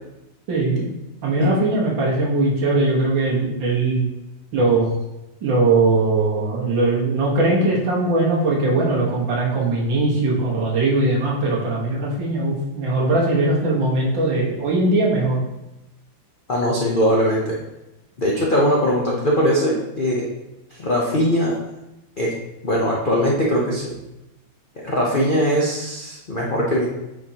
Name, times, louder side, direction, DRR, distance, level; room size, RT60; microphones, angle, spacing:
voice 1, 0.5-0.9 1.2-4.1 4.5-4.9 5.4-15.4, right 2 dB, 65° right, -5 dB, 2.1 m, -20 dB
voice 2, 16.5-17.6 18.2-20.2 20.8-21.5 22.2-22.3 22.6-23.9 24.8-26.9, equal, 65° left, -4 dB, 0.5 m, -20 dB
8.8 x 4.4 x 2.9 m, 0.94 s
omnidirectional pair, 2.3 m